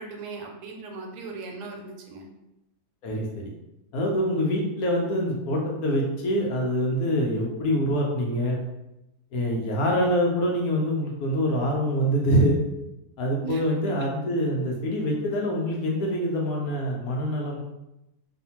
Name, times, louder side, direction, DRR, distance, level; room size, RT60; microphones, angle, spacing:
voice 1, 0.0-2.3 13.4-13.6, right 4 dB, 90° right, 1 dB, 1.2 m, -38 dB
voice 2, 3.0-3.5 3.9-8.6 9.3-12.6 13.2-17.6, equal, 70° left, -1 dB, 1.0 m, -25 dB
2.7 x 2.4 x 2.8 m, 0.92 s
omnidirectional pair, 1.7 m